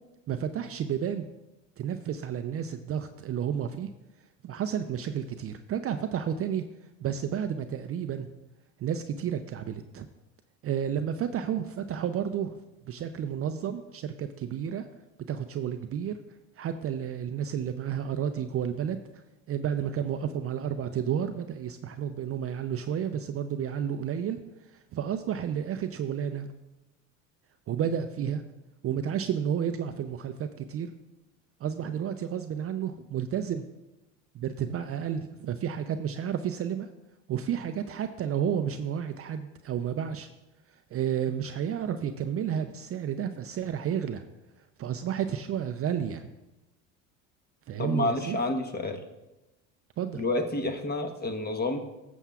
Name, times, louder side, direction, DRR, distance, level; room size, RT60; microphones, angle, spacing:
voice 1, 0.3-1.3 1.8-3.9 4.4-6.6 7.0-8.3 8.8-10.1 10.6-12.6 12.9-14.9 15.3-16.2 16.6-26.5 27.7-28.4 28.8-30.9 31.6-33.7 34.3-36.9 37.3-40.3 40.9-44.2 44.8-46.3 47.7-48.4 50.0-50.2, right 8 dB, 35° right, 9 dB, 0.5 m, -31 dB
voice 2, 47.8-49.0 50.2-51.8, left 2 dB, 25° left, 5 dB, 1.2 m, -29 dB
14.0 x 7.1 x 2.4 m, 1.0 s
supercardioid pair, 85°, 40 cm